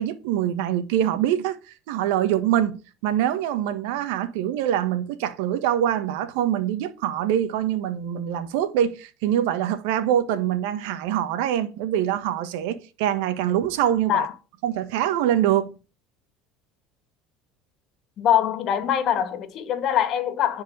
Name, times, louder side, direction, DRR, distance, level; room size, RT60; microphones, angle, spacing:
voice 1, 0.0-14.3 14.6-15.7, right 11 dB, 80° right, 1.4 m, -24 dB
voice 2, 18.2-20.6, left 10 dB, 55° left, 1.9 m, -23 dB
10.5 x 4.7 x 7.4 m
supercardioid pair, 100°, 0 cm